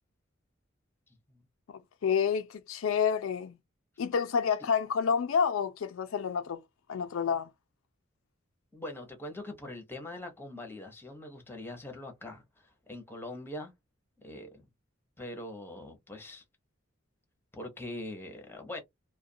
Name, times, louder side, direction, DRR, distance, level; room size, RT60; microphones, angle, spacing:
voice 1, 1.7-3.6 4.0-6.6 6.9-7.5, left 6 dB, 75° left, 0.4 m, -29 dB
voice 2, 8.7-13.7 14.2-14.6 15.2-16.4 17.5-18.8, left 1 dB, 10° left, 0.7 m, -42 dB
2.4 x 2.2 x 2.6 m
head